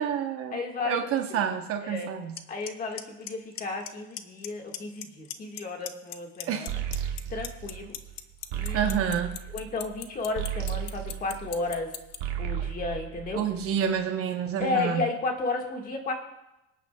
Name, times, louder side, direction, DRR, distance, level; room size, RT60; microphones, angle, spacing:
voice 1, 0.0-2.4 6.5-6.7 8.7-9.4 13.4-15.1, right 8 dB, 40° right, 5 dB, 0.9 m, -29 dB
voice 2, 0.5-1.4 1.8-2.1 2.5-6.8 7.3-7.9 8.5-8.9 9.5-11.9 12.4-13.4 14.6-16.1, left 3 dB, 25° left, 2 dB, 1.6 m, -33 dB
Clock, 2.4-2.5 2.7-3.0 3.3-3.9 4.2-4.5 4.7-5.6 5.9-12.2, left 14 dB, 50° left, 0.7 m, -36 dB
sound 1, 6.7-11.8 12.1-13.9, right 10 dB, 55° right, 1.4 m, -34 dB
25.5 x 9.1 x 2.2 m, 0.94 s
cardioid pair, 170°, 36 cm